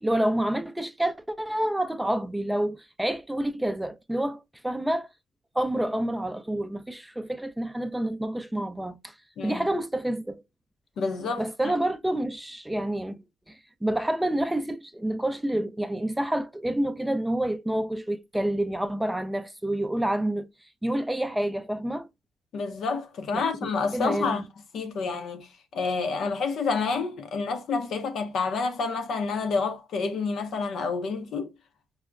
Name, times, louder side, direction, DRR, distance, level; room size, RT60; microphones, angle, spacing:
voice 1, 0.0-5.1 5.5-9.1 9.4-10.4 11.4-13.2 13.5-20.5 20.8-22.1 23.3-24.4, right 1 dB, 5° right, 0.4 m, -28 dB
voice 2, 9.4-9.7 11.0-11.5 22.5-24.4 24.7-25.5 25.7-31.5, left 4 dB, 70° left, 0.6 m, -28 dB
4.6 x 2.1 x 2.4 m
cardioid pair, 90°, 0 cm